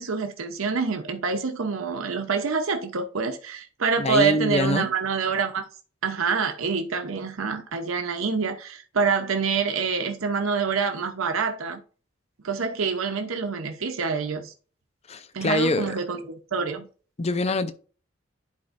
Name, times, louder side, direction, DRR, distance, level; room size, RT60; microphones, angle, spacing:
voice 1, 0.0-5.6 6.0-11.8 12.4-14.5 15.3-16.9, right 5 dB, 80° right, 0.8 m, -26 dB
voice 2, 4.0-4.9 15.1-15.9 17.2-17.7, left 2 dB, 30° left, 0.5 m, -24 dB
10.5 x 4.3 x 2.6 m
head